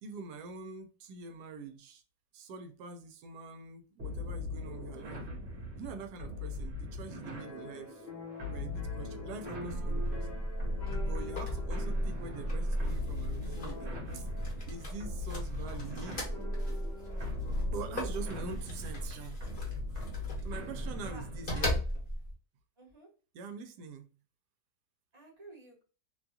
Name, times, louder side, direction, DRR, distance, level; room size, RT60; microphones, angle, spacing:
voice 1, 0.0-2.0 2.3-5.3 5.8-8.1 8.5-10.3 11.0-14.3 14.7-16.4 17.7-19.4 20.4-21.8 23.3-24.1, right 4 dB, 75° right, 1.0 m, -44 dB
sound 1, 4.0-21.6, left 3 dB, 50° right, 0.9 m, -41 dB
sound 2, 7.3-18.6, left 2 dB, 70° left, 0.4 m, -48 dB
sound 3, 9.7-22.3, equal, 35° left, 0.9 m, -36 dB
voice 2, 21.0-21.7 22.8-23.1 25.1-25.8, right 1 dB, 20° right, 1.0 m, -52 dB
2.8 x 2.3 x 2.6 m
omnidirectional pair, 1.8 m